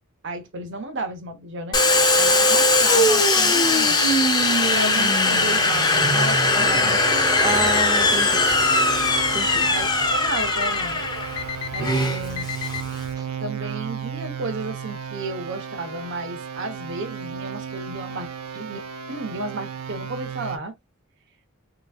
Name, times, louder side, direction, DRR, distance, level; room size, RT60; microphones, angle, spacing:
voice 1, 0.2-1.8 2.2-4.0 4.7-7.0 9.7-11.0 11.7-12.5 13.4-20.7, right 2 dB, 55° right, 0.9 m, -33 dB
Domestic sounds home sounds, 1.7-13.1, left 2 dB, 20° left, 0.7 m, -20 dB
sound 1, 6.0-20.6, right 7 dB, 80° right, 0.6 m, -35 dB
voice 2, 6.5-7.0 7.4-8.5 9.3-9.7 13.2-13.3, right 2 dB, 15° right, 0.5 m, -29 dB
Alarm, 6.7-6.8 7.4-7.8 8.4-8.8 9.4-9.8 10.4-10.8 11.4-11.8 12.4-12.8, left 9 dB, 90° left, 0.5 m, -32 dB
3.4 x 3.0 x 2.2 m
head